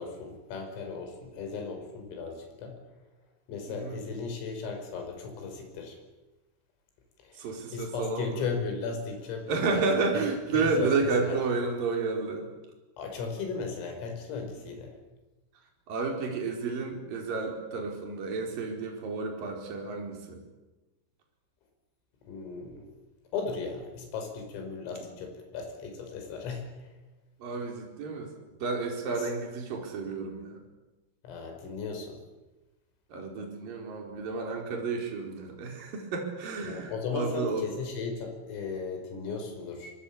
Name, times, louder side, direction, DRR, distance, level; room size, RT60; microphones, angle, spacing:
voice 1, 0.0-2.8 3.5-6.0 7.2-7.5 7.7-9.8 10.1-10.2 10.5-11.4 13.0-15.0 22.3-22.9 23.3-26.9 31.2-32.2 36.7-39.9, left 5 dB, 85° left, 4 dB, 7.7 m, -36 dB
voice 2, 3.7-4.0 7.4-8.5 9.5-12.5 15.9-20.4 27.4-28.3 28.6-30.6 33.1-37.7, right 4 dB, 45° right, 2 dB, 5.8 m, -31 dB
25.0 x 24.5 x 8.7 m, 1.1 s
omnidirectional pair, 5.8 m